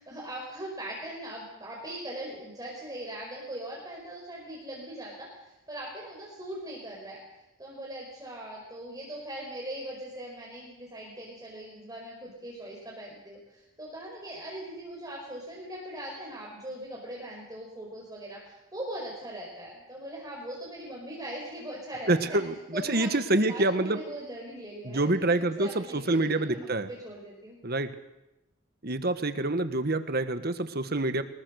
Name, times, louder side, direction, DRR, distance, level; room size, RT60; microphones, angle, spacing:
voice 1, 0.0-22.4 22.7-27.6, right 1 dB, 20° right, -3 dB, 5.5 m, -40 dB
voice 2, 22.1-24.0 24.8-26.9 27.6-27.9 28.8-31.2, right 2 dB, 50° right, 10 dB, 1.5 m, -27 dB
26.5 x 21.0 x 6.6 m, 0.96 s
head